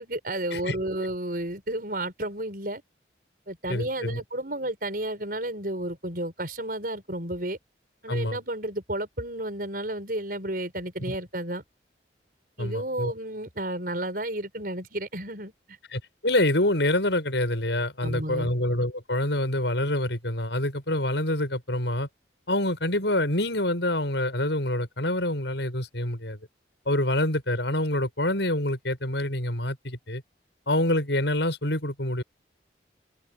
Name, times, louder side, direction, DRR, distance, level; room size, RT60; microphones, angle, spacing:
voice 1, 0.0-2.8 3.5-7.6 8.0-11.6 12.6-15.5 18.0-18.5, right 1 dB, 50° right, 6.3 m, -32 dB
voice 2, 3.7-4.2 8.1-8.4 11.0-11.1 12.6-13.1 15.9-22.1 22.5-26.4 26.8-30.2 30.7-32.2, left 1 dB, 75° left, 6.9 m, -26 dB
head